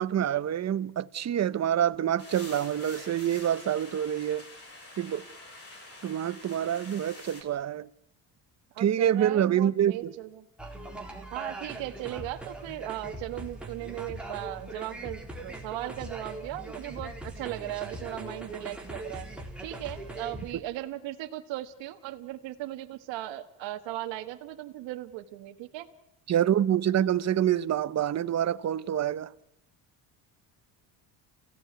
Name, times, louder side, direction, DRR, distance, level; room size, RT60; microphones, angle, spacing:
voice 1, 0.0-4.4 5.0-5.2 6.0-7.9 8.8-10.1 26.3-29.3, right 10 dB, 35° right, 0.9 m, -26 dB
sound 1, 2.2-7.4, left 2 dB, 30° left, 7.4 m, -47 dB
voice 2, 8.7-10.5 11.3-19.3 19.6-25.9, right 15 dB, 75° right, 1.7 m, -37 dB
sound 2, 10.6-20.5, right 1 dB, ahead, 4.0 m, -41 dB
29.5 x 16.5 x 9.5 m
cardioid pair, 120°, 44 cm